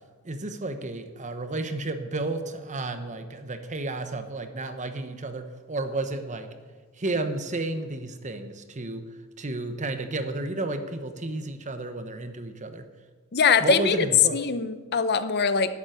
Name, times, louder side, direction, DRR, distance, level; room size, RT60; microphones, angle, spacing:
voice 1, 0.2-6.5 7.0-9.0 9.4-12.9 13.6-14.4, right 2 dB, 35° right, 8 dB, 1.0 m, -32 dB
voice 2, 13.3-14.1 14.3-15.8, left 5 dB, 50° left, 12 dB, 0.7 m, -23 dB
11.5 x 7.2 x 9.1 m, 1.4 s
head